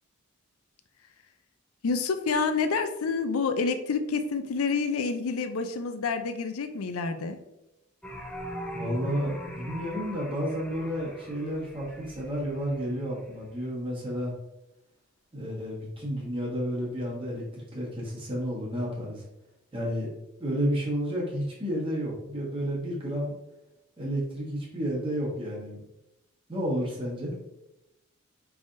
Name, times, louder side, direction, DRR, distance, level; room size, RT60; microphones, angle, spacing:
voice 1, 1.8-7.4, left 4 dB, 80° left, 9 dB, 0.5 m, -28 dB
sound 1, 8.0-13.6, equal, 5° left, 0.4 m, -41 dB
voice 2, 8.7-14.3 15.3-19.2 19.7-20.1 20.4-23.3 24.0-25.8 26.5-27.4, equal, 25° right, -5 dB, 1.4 m, -31 dB
5.2 x 3.5 x 2.6 m, 0.91 s
head